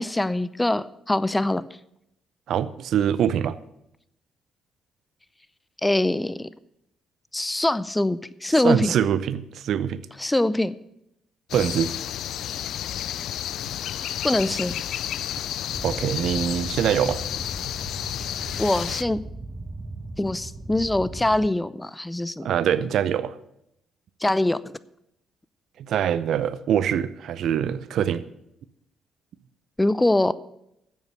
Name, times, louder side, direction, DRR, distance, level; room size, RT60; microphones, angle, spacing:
voice 1, 0.0-1.6 5.8-6.5 7.3-8.9 10.2-10.7 14.2-14.8 18.6-19.2 20.2-22.5 24.2-24.6 29.8-30.3, left 1 dB, 15° left, 17 dB, 0.6 m, -23 dB
voice 2, 2.5-3.6 8.6-10.0 11.5-11.9 15.8-17.2 22.4-23.3 25.8-28.2, right 9 dB, 65° right, 16 dB, 0.5 m, -24 dB
sound 1, 11.5-19.0, left 11 dB, 70° left, 0.3 m, -31 dB
sound 2, 15.7-21.5, right 2 dB, 25° right, 1.0 m, -38 dB
9.3 x 8.0 x 8.1 m, 0.80 s
hypercardioid pair, 50°, 0 cm